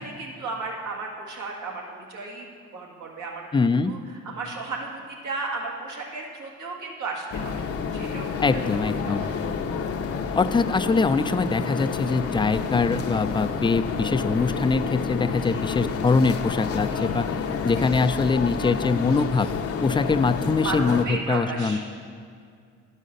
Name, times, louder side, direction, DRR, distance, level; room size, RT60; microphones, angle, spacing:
voice 1, 0.0-3.5 3.8-7.7 7.9-9.3 15.4-15.7 16.9-17.5 20.6-21.8, right 3 dB, 75° right, -1 dB, 1.8 m, -35 dB
voice 2, 3.5-3.9 8.4-9.3 10.3-17.3 17.6-19.5 19.8-21.8, left 4 dB, 15° left, 12 dB, 0.3 m, -23 dB
sound 1, 7.3-21.1, left 5 dB, 50° left, 0.7 m, -29 dB
11.0 x 5.4 x 6.4 m, 2.2 s
cardioid pair, 90°, 30 cm